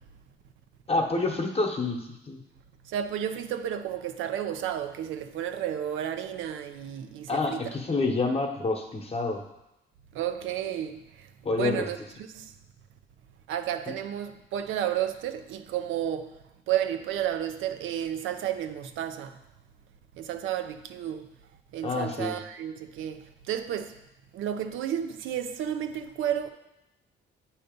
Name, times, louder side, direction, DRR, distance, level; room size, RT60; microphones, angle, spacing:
voice 1, 0.9-2.4 7.3-9.4 11.4-11.9 21.8-22.4, left 3 dB, 30° left, 1.0 m, -28 dB
voice 2, 2.8-7.8 10.1-12.0 12.3-12.5 13.5-16.4 16.7-19.4 20.1-21.3 21.7-24.0 24.3-26.5, right 10 dB, 85° right, 0.5 m, -32 dB
7.8 x 2.8 x 5.1 m
cardioid pair, 90°, 20 cm